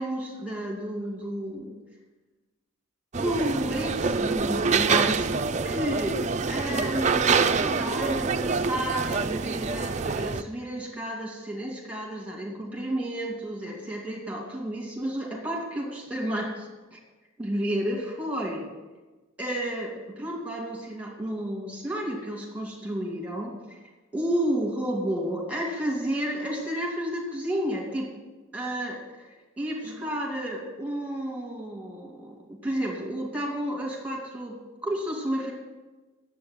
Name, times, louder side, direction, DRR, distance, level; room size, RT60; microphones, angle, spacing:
voice 1, 0.0-1.7 3.2-6.2 6.5-17.0 17.4-18.7 19.4-23.8 24.1-28.1 28.5-29.3 29.6-34.6 34.8-35.5, right 1 dB, 5° right, -1 dB, 2.6 m, -31 dB
sound 1, 3.1-10.4, right 4 dB, 35° right, 0.5 m, -26 dB
10.5 x 8.1 x 9.6 m, 1.2 s
head